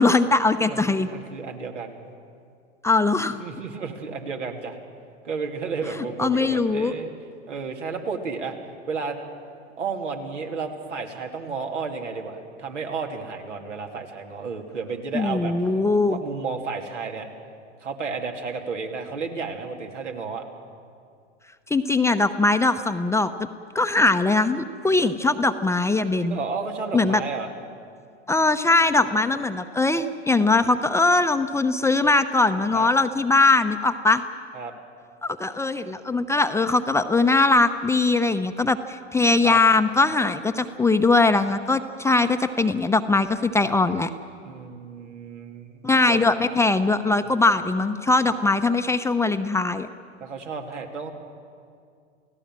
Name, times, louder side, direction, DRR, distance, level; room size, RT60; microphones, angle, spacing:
voice 1, 0.0-1.1 2.8-3.4 6.0-6.9 15.1-16.2 21.7-23.3 23.7-26.4 26.9-27.2 28.3-34.2 35.2-44.1 45.8-49.9, left 3 dB, 10° left, 8 dB, 0.7 m, -21 dB
voice 2, 0.7-2.0 3.4-4.8 5.2-7.1 7.5-8.6 8.9-9.2 9.8-15.5 16.1-17.3 17.8-20.4 26.2-27.5 32.7-32.9 34.5-34.7 39.4-39.6 44.4-46.2 50.2-51.1, right 5 dB, 80° right, 3 dB, 2.8 m, -32 dB
30.0 x 16.5 x 7.5 m, 2.3 s
hypercardioid pair, 95°, 35 cm